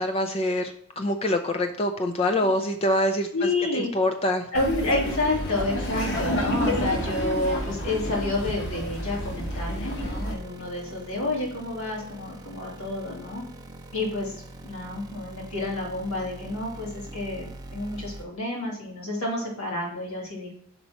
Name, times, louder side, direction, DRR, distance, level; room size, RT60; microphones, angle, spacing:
voice 1, 0.0-3.5 3.7-4.5, left 1 dB, 30° left, 5 dB, 0.4 m, -25 dB
voice 2, 3.3-3.9 4.5-13.4 13.9-20.5, left 2 dB, 80° left, -3 dB, 2.3 m, -29 dB
Laughter, 4.5-10.3, left 1 dB, 50° left, 1.2 m, -29 dB
sound 1, 4.7-18.2, right 1 dB, 20° right, 0.6 m, -43 dB
5.3 x 4.1 x 5.8 m, 0.66 s
head